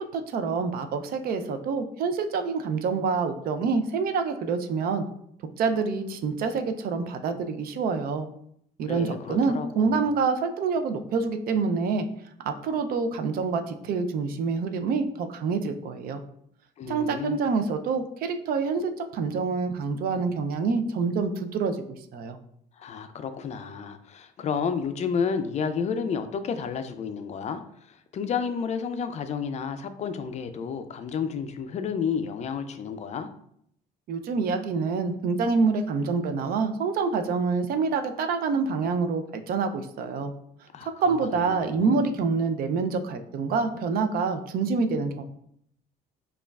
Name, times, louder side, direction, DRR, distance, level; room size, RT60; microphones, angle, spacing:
voice 1, 0.0-5.0 5.6-8.3 8.8-12.1 12.4-16.2 16.9-21.8 22.1-22.4 34.1-40.3 40.8-45.2, right 4 dB, 60° right, 7 dB, 0.4 m, -26 dB
voice 2, 8.8-10.1 16.8-17.4 22.8-27.6 27.9-33.3 40.7-42.0, left 6 dB, 45° left, 9 dB, 0.4 m, -31 dB
5.1 x 2.4 x 2.3 m, 0.70 s
cardioid pair, 110°, 17 cm